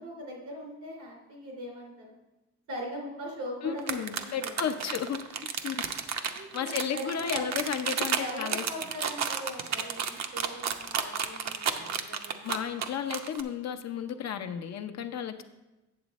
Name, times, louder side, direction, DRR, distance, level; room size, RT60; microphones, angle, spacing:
voice 1, 0.0-2.1 2.7-5.0 6.3-7.5 8.2-12.4, equal, 85° right, -1 dB, 2.9 m, -40 dB
voice 2, 3.6-5.2 5.6-5.8 6.1-8.6 12.1-15.4, left 8 dB, 60° left, 8 dB, 0.7 m, -33 dB
sound 1, 3.8-13.4, right 7 dB, 60° right, 0.8 m, -32 dB
8.7 x 7.1 x 4.1 m, 1.0 s
cardioid pair, 90°, 30 cm